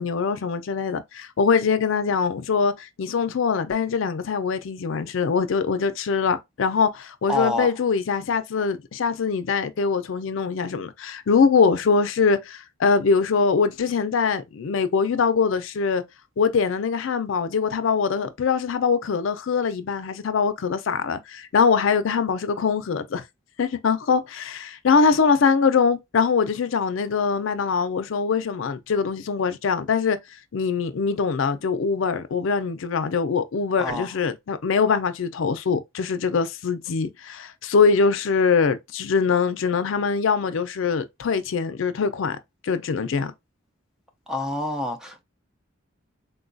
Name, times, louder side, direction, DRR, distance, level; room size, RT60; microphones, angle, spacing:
voice 1, 0.0-16.0 16.4-23.2 23.6-30.2 30.5-42.4 42.6-43.3, left 5 dB, 70° left, 0.4 m, -23 dB
voice 2, 7.3-7.7 33.8-34.1 44.3-45.2, left 1 dB, 5° right, 0.4 m, -27 dB
3.7 x 2.3 x 2.5 m
head